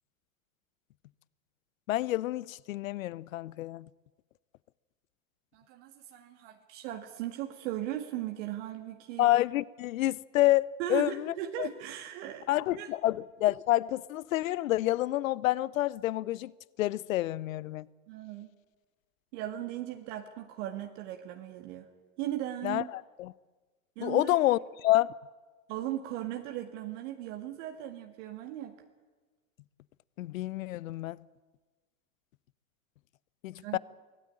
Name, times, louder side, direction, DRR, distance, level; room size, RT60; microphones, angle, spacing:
voice 1, 1.9-3.9 9.2-11.7 12.5-16.5 16.8-17.9 22.6-23.3 24.0-25.1 30.2-31.2 33.4-33.8, left 15 dB, 75° left, 0.7 m, -28 dB
voice 2, 5.5-9.4 10.8-12.9 18.1-18.5 19.3-21.9 22.2-22.9 24.0-24.3 25.7-28.8 33.6-33.8, right 12 dB, 60° right, 1.9 m, -38 dB
24.5 x 16.5 x 9.0 m
hypercardioid pair, 90°, 40 cm